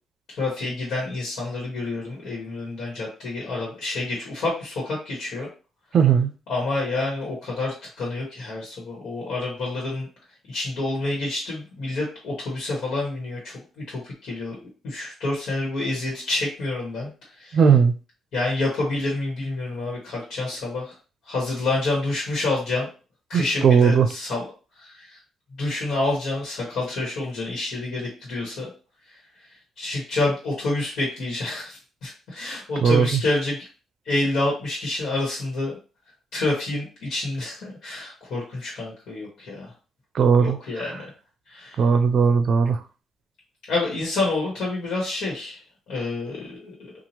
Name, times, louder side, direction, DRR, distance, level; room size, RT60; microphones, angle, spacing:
voice 1, 0.3-5.5 6.5-10.1 10.5-13.6 13.9-14.6 14.8-17.1 17.4-17.8 18.3-20.9 21.3-22.9 23.3-24.5 24.8-25.2 25.6-28.7 29.8-33.7 34.0-35.7 36.3-39.7 40.4-41.0 41.5-41.8 43.7-45.6 45.9-46.7, left 2 dB, 75° left, -3 dB, 1.4 m, -28 dB
voice 2, 5.9-6.3 17.5-17.9 23.3-24.1 32.8-33.1 40.1-40.6 40.8-41.0 41.8-42.8, right 6 dB, 60° right, 9 dB, 0.4 m, -17 dB
2.8 x 2.4 x 2.9 m, 0.34 s
cardioid pair, 90°, 0 cm